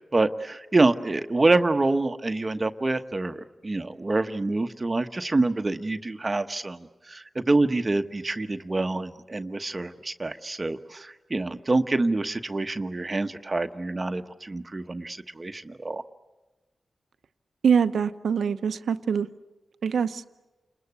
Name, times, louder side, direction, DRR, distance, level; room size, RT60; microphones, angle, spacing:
voice 1, 0.1-16.0, right 2 dB, 35° right, 8 dB, 1.1 m, -26 dB
voice 2, 17.6-19.3 19.8-20.2, right 6 dB, 85° right, 11 dB, 0.8 m, -24 dB
30.0 x 21.0 x 8.3 m, 1.1 s
cardioid pair, 60°, 0 cm